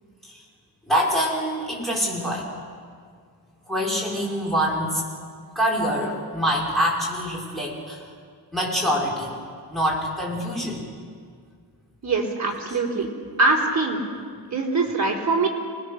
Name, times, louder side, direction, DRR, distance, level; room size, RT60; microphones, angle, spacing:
voice 1, 0.8-2.5 3.7-5.1 5.6-8.0 8.5-9.3 9.7-10.9, equal, ahead, -5 dB, 5.5 m, -25 dB
voice 2, 12.0-13.1 13.4-14.0 14.5-15.5, right 3 dB, 45° right, -2 dB, 3.9 m, -22 dB
26.5 x 20.0 x 6.7 m, 2.1 s
wide cardioid pair, 155°, 40 cm